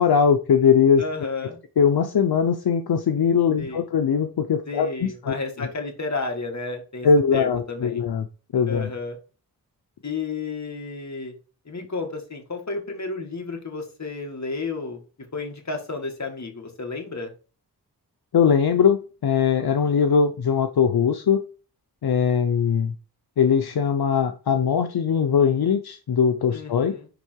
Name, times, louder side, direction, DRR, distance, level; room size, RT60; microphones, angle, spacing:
voice 1, 0.0-1.0 1.8-5.3 7.0-8.3 8.5-8.9 18.3-21.4 22.0-22.9 23.4-27.0, left 6 dB, 75° left, 6 dB, 0.8 m, -20 dB
voice 2, 1.0-1.6 3.6-3.8 4.7-8.0 8.7-9.2 10.0-11.3 11.7-15.0 15.3-17.3 26.5-27.1, left 3 dB, 45° left, 3 dB, 2.1 m, -32 dB
10.0 x 3.6 x 4.6 m, 0.36 s
wide cardioid pair, 70°, 38 cm